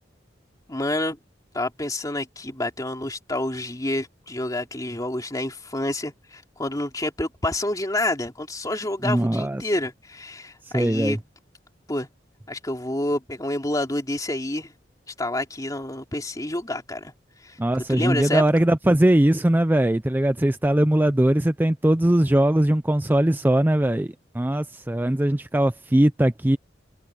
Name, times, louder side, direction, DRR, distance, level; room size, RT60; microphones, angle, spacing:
voice 1, 0.7-1.2 1.5-11.2 11.9-12.1 12.5-14.7 15.2-17.1 17.4-17.6 17.9-18.4, left 1 dB, 20° left, 2.8 m, -28 dB
voice 2, 9.0-9.6 10.6-11.2 17.6-26.6, right 1 dB, 10° right, 0.5 m, -20 dB
head